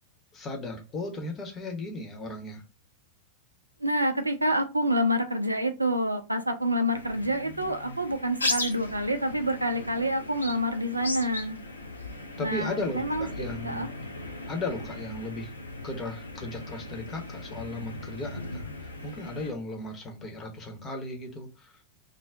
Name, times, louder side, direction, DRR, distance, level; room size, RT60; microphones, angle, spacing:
voice 1, 0.3-2.6 12.4-13.9 14.5-15.5 15.8-21.7, left 2 dB, 25° left, 0.8 m, -36 dB
voice 2, 3.8-11.6 12.4-13.9, equal, 85° right, 0.4 m, -27 dB
sound 1, 6.9-19.5, left 2 dB, 80° left, 0.5 m, -37 dB
2.5 x 2.2 x 3.4 m
figure-of-eight pair, 90°, 0 cm